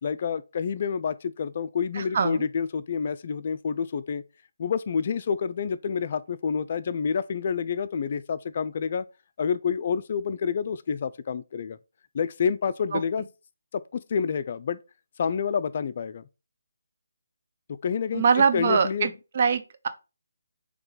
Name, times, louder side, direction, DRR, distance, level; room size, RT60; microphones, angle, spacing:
voice 1, 0.0-4.2 4.6-9.1 9.4-11.8 12.1-13.2 13.7-14.8 15.2-16.2 17.7-19.1, left 6 dB, 45° left, 0.3 m, -28 dB
voice 2, 2.0-2.5 12.9-13.0 18.1-19.9, right 6 dB, 45° right, 0.5 m, -23 dB
3.9 x 2.9 x 3.8 m
figure-of-eight pair, 155°, 0 cm